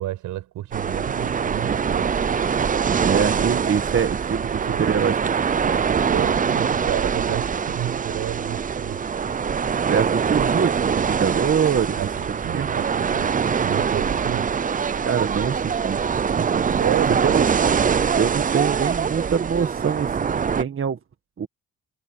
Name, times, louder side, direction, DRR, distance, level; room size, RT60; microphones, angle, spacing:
voice 1, 0.0-2.1 3.0-3.3 4.5-5.0 6.1-9.0 12.0-14.5 16.8-17.4, right 14 dB, 85° right, 7.4 m, -31 dB
sound 1, 0.7-20.6, right 6 dB, 25° right, 0.6 m, -23 dB
voice 2, 3.1-5.2 9.9-12.0 12.3-12.7 15.1-16.0 16.3-16.6 17.2-17.8 18.1-21.0 21.4-21.5, right 7 dB, 45° right, 1.8 m, -24 dB
cardioid pair, 90°, 30 cm